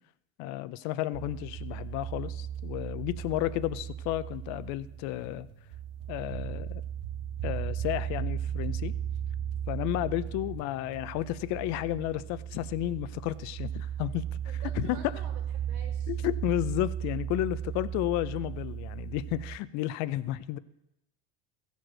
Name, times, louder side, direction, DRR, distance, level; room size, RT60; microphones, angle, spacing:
voice 1, 0.4-5.5 6.1-6.8 7.4-8.9 9.7-14.3 14.8-15.0 16.1-20.6, left 15 dB, 65° left, 16 dB, 0.6 m, -32 dB
sound 1, 1.1-19.6, right 9 dB, 50° right, 0.9 m, -36 dB
voice 2, 14.4-16.2, right 6 dB, 75° right, 2 dB, 2.3 m, -49 dB
15.0 x 5.2 x 6.2 m, 0.85 s
supercardioid pair, 120°, 31 cm